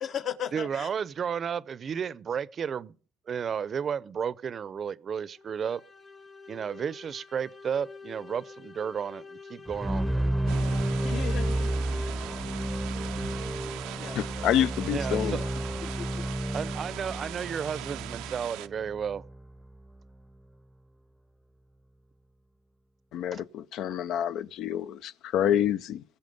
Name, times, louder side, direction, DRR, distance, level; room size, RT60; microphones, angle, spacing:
voice 1, 0.0-0.9 11.0-11.8 13.9-14.2 15.1-15.5 15.8-16.2, left 8 dB, 50° left, 1.2 m, -37 dB
voice 2, 0.5-2.9 3.3-5.8 6.5-10.2 14.9-15.4 16.5-19.2 23.3-23.4, right 7 dB, 40° right, 0.6 m, -33 dB
sound 1, 5.4-13.8, left 4 dB, 25° left, 1.1 m, -48 dB
sound 2, 9.7-19.7, right 1 dB, ahead, 0.7 m, -31 dB
sound 3, 10.5-18.7, right 16 dB, 90° right, 0.5 m, -41 dB
voice 3, 14.1-15.4 23.1-26.0, left 10 dB, 65° left, 0.6 m, -28 dB
21.5 x 7.2 x 5.4 m
cardioid pair, 110°, 0 cm